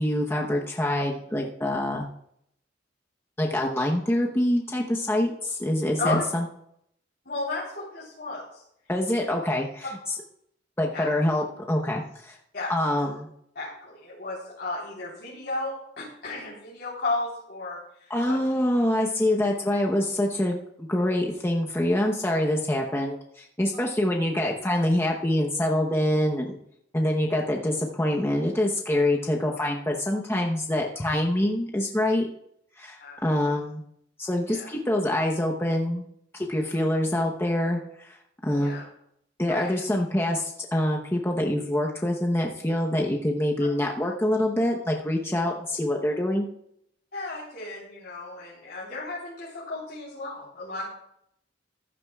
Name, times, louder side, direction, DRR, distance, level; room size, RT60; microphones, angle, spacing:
voice 1, 0.0-2.1 3.4-6.4 8.9-9.9 10.8-12.4 12.7-13.3 18.1-26.6 26.9-32.3 32.8-33.8 34.2-36.0 36.3-37.8 38.1-38.2 38.4-38.8 39.4-46.5, left 1 dB, 15° left, 0 dB, 0.9 m, -25 dB
voice 2, 7.3-8.6 10.9-11.1 12.5-12.7 13.6-18.4 23.7-23.8 33.0-33.2 34.5-34.7 38.5-38.8 39.5-39.8 47.1-50.8, left 2 dB, 60° left, -7 dB, 3.7 m, -34 dB
15.0 x 11.5 x 2.4 m, 0.73 s
head